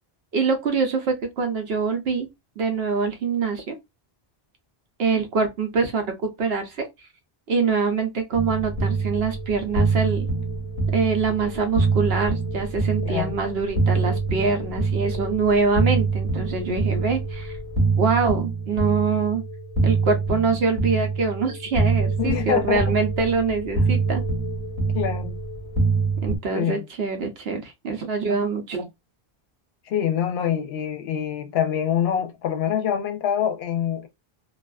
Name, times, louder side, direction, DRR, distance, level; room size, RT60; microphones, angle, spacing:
voice 1, 0.3-2.3 2.6-3.7 5.0-6.9 7.5-10.3 10.9-17.6 18.0-19.4 19.8-24.2 26.2-28.9, right 5 dB, 75° right, 0.9 m, -24 dB
sound 1, 8.3-26.4, right 3 dB, 40° right, 1.3 m, -25 dB
voice 2, 13.0-13.3 22.2-23.0 24.9-25.4 26.5-26.8 29.9-34.1, left 9 dB, 80° left, 0.8 m, -25 dB
2.4 x 2.4 x 2.2 m
omnidirectional pair, 1.0 m